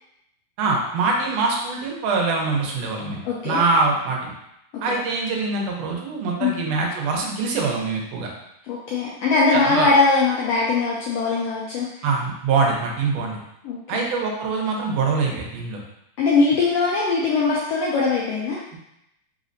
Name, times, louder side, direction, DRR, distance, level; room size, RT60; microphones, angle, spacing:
voice 1, 0.6-4.3 4.8-8.3 9.5-9.9 12.0-13.4 13.9-15.8 18.7-18.8, right 4 dB, 75° right, 0 dB, 1.7 m, -24 dB
voice 2, 3.2-3.6 4.7-4.8 6.4-6.6 8.7-12.0 13.6-14.0 16.2-18.6, left 4 dB, 85° left, -4 dB, 1.4 m, -21 dB
4.1 x 3.7 x 2.5 m, 0.81 s
omnidirectional pair, 3.4 m